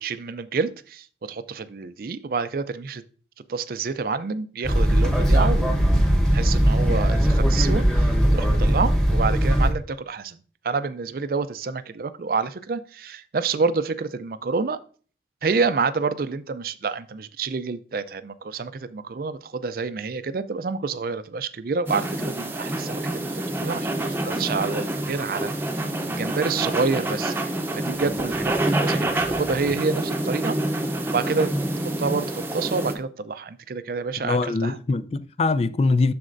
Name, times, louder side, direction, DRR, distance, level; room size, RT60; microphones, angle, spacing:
voice 1, 0.0-3.0 3.5-5.7 6.3-14.8 15.4-23.3 23.6-25.5 26.1-27.4 27.7-30.6 31.1-31.5 32.0-34.8, right 4 dB, 55° right, 0.4 m, -28 dB
sound 1, 4.6-9.7, equal, 5° left, 1.0 m, -19 dB
sound 2, 21.9-32.9, right 1 dB, 10° right, 0.7 m, -27 dB
voice 2, 34.2-36.1, left 3 dB, 35° left, 0.3 m, -23 dB
12.5 x 4.2 x 2.5 m
head